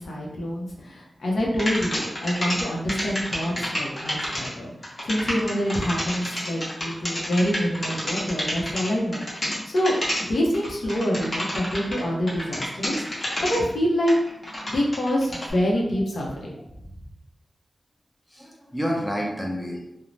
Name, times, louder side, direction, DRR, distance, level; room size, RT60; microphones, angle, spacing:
voice 1, 0.0-4.7 5.1-9.9 10.3-14.1 14.6-16.5, equal, 75° left, -2 dB, 0.6 m, -26 dB
sound 1, 1.6-2.6 2.9-12.0 12.3-13.6 14.1-15.5, equal, 35° left, 0.9 m, -29 dB
voice 2, 18.3-19.8, equal, 5° left, -1 dB, 0.6 m, -30 dB
2.5 x 2.0 x 3.1 m, 0.82 s
wide cardioid pair, 95°, 0 cm